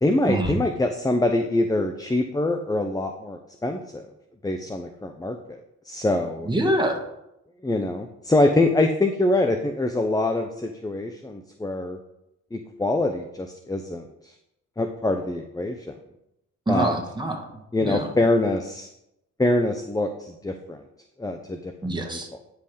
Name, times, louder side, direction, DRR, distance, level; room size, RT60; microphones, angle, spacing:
voice 1, 0.0-4.0 4.4-6.5 7.6-12.0 12.5-14.0 14.8-15.9 16.7-17.0 17.7-18.9 19.4-20.8 21.2-21.7, left 2 dB, 10° left, 6 dB, 0.7 m, -24 dB
voice 2, 6.5-7.0 16.7-17.5 17.8-18.1 21.8-22.3, right 1 dB, 15° right, 1 dB, 2.0 m, -25 dB
9.9 x 5.4 x 5.1 m, 0.84 s
cardioid pair, 75°, 32 cm